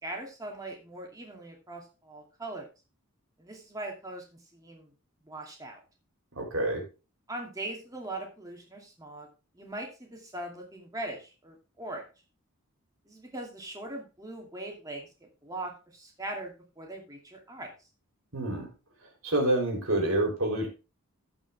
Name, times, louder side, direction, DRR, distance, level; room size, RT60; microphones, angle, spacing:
voice 1, 0.0-2.7 3.4-4.9 5.2-5.8 7.3-9.3 9.5-12.0 13.1-17.7, right 2 dB, 15° right, 1 dB, 2.5 m, -40 dB
voice 2, 6.4-6.8 18.3-18.7 19.2-20.7, right 1 dB, 75° right, 1 dB, 3.6 m, -27 dB
15.0 x 5.5 x 3.5 m, 0.31 s
head